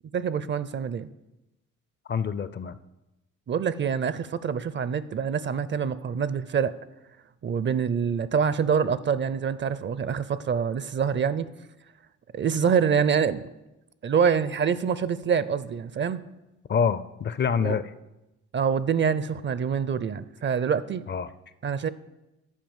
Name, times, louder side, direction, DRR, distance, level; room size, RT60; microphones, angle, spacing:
voice 1, 0.1-1.1 3.5-6.7 7.4-11.5 12.3-13.4 14.0-16.2 17.6-17.8 18.5-21.0 21.6-21.9, right 7 dB, 40° right, 0.5 m, -25 dB
voice 2, 2.1-2.8 16.7-17.9 21.1-21.3, left 6 dB, 35° left, 0.5 m, -26 dB
11.0 x 4.7 x 7.3 m
cardioid pair, 90°, 30 cm